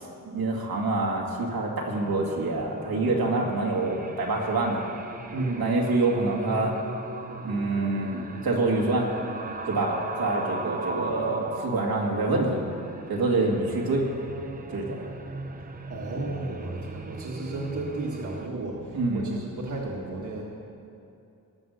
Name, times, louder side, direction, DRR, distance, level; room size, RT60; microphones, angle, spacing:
voice 1, 0.0-4.8 5.6-6.7 7.4-9.1 9.7-12.6 13.1-14.1 14.7-15.0 18.9-19.4, right 2 dB, 85° right, -2 dB, 2.2 m, -26 dB
sound 1, 1.9-18.5, right 3 dB, 25° right, 0.8 m, -38 dB
voice 2, 5.3-5.7 14.5-14.9 15.3-20.4, right 2 dB, 55° right, -2 dB, 1.7 m, -34 dB
18.0 x 7.3 x 6.5 m, 2.7 s
wide cardioid pair, 110°, 35 cm